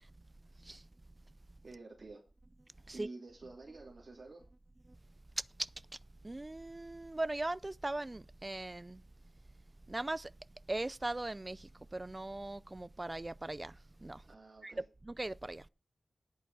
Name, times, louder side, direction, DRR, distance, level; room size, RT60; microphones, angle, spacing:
voice 1, 1.6-2.2 2.9-4.4 14.2-14.9, right 3 dB, 60° right, 2.9 m, -50 dB
voice 2, 6.2-9.0 9.9-10.3 10.7-13.7 14.0-14.2 14.6-14.7 15.1-15.6, right 2 dB, 25° right, 0.4 m, -39 dB
10.5 x 8.4 x 4.8 m
wide cardioid pair, 95°, 0 cm